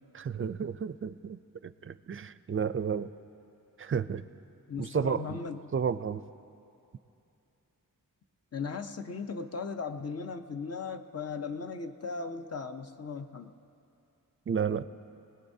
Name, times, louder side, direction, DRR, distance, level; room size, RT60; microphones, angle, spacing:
voice 1, 0.1-3.1 3.8-4.2 4.8-5.3 5.7-6.2 14.5-14.9, right 7 dB, 40° right, 14 dB, 0.4 m, -32 dB
voice 2, 4.7-5.7 8.5-13.5, left 4 dB, 45° left, 7 dB, 0.7 m, -37 dB
25.5 x 19.0 x 2.7 m, 2.8 s
wide cardioid pair, 95°, 34 cm